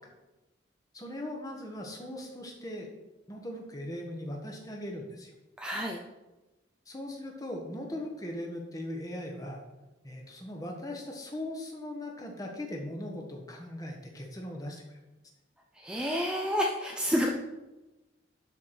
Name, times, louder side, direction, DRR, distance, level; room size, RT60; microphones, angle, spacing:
voice 1, 0.9-2.9 3.3-5.3 6.9-9.6 10.0-15.0, left 1 dB, 20° left, 1 dB, 1.3 m, -39 dB
voice 2, 5.6-6.0 15.8-17.3, equal, 5° right, -1 dB, 0.6 m, -29 dB
11.5 x 4.7 x 4.4 m, 1.1 s
head